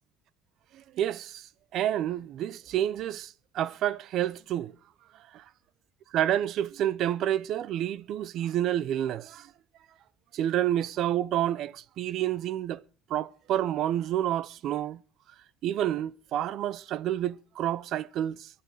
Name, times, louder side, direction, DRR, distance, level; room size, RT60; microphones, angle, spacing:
voice 1, 0.7-1.5 1.7-4.7 6.1-9.5 10.3-12.8 13.1-15.0 15.6-18.5, right 11 dB, 60° right, 0.7 m, -29 dB
23.5 x 8.7 x 4.7 m
cardioid pair, 110°, 0 cm